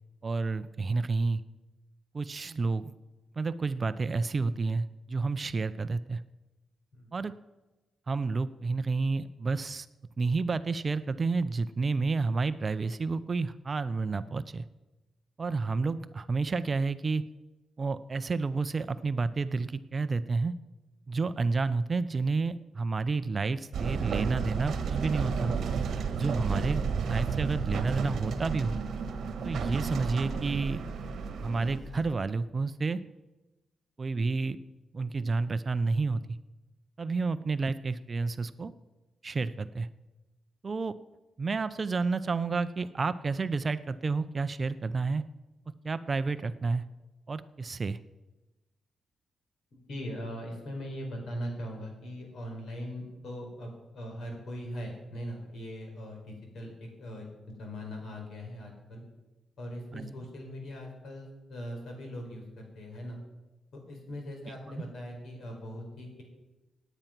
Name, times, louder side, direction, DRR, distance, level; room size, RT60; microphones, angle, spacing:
voice 1, 0.2-1.4 2.1-2.9 3.4-6.2 7.1-7.3 8.1-9.9 10.2-14.6 15.4-17.2 17.8-20.5 21.1-25.5 26.2-28.8 29.4-30.8 31.4-33.0 34.0-34.6 34.9-36.2 37.0-38.7 39.2-39.9 40.6-41.0 41.4-45.2 45.8-46.8 47.3-48.0 59.9-60.1 64.5-64.8, right 4 dB, 30° right, 13 dB, 0.4 m, -30 dB
sound 1, 23.7-31.8, right 6 dB, 60° right, 1.3 m, -32 dB
sound 2, 26.4-32.1, left 1 dB, 30° left, 3.3 m, -45 dB
voice 2, 49.7-57.3 57.6-59.0 59.6-62.4 62.7-63.2 63.7-66.2, equal, 60° left, 2 dB, 4.5 m, -40 dB
18.0 x 9.0 x 5.9 m, 1.1 s
wide cardioid pair, 165°, 0 cm